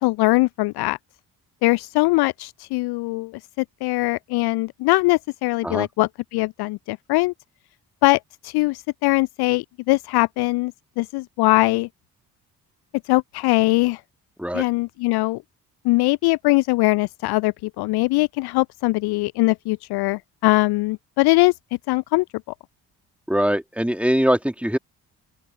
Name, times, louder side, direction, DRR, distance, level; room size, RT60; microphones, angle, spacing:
voice 1, 0.0-1.0 1.6-7.3 8.0-11.9 13.1-14.0 14.5-15.4 15.8-21.5 21.9-22.2, left 22 dB, 50° left, 0.6 m, -21 dB
voice 2, 23.3-24.8, equal, 5° right, 3.0 m, -22 dB
open air
figure-of-eight pair, 40°, 49 cm